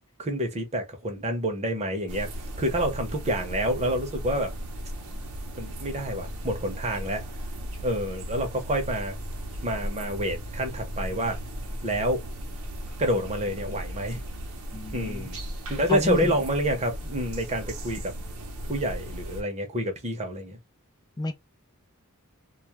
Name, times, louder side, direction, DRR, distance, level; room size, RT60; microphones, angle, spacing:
voice 1, 0.2-2.3 2.6-4.5 5.6-7.2 7.8-9.2 9.6-11.4 11.8-12.2 13.0-14.2 14.9-15.4 15.7-18.1 18.7-20.6, equal, 30° right, 0.8 m, -28 dB
sound 1, 2.1-19.4, equal, 65° right, 0.7 m, -36 dB
voice 2, 14.7-15.3 15.9-16.3 21.2-21.3, left 2 dB, 20° left, 0.4 m, -30 dB
2.3 x 2.1 x 2.9 m
head